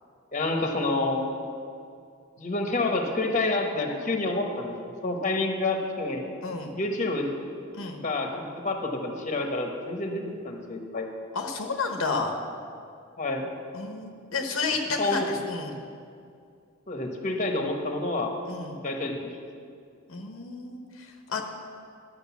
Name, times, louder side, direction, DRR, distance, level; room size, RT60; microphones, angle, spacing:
voice 1, 0.3-1.3 2.4-6.2 6.7-7.3 8.0-11.1 13.2-13.5 15.0-15.3 16.9-18.3 18.8-19.2, left 2 dB, 35° left, 2 dB, 1.2 m, -28 dB
voice 2, 6.4-6.7 7.7-8.0 11.3-12.3 13.7-15.8 18.5-18.8 20.1-21.4, left 4 dB, 75° left, 3 dB, 1.0 m, -31 dB
10.5 x 6.6 x 7.1 m, 2.4 s
head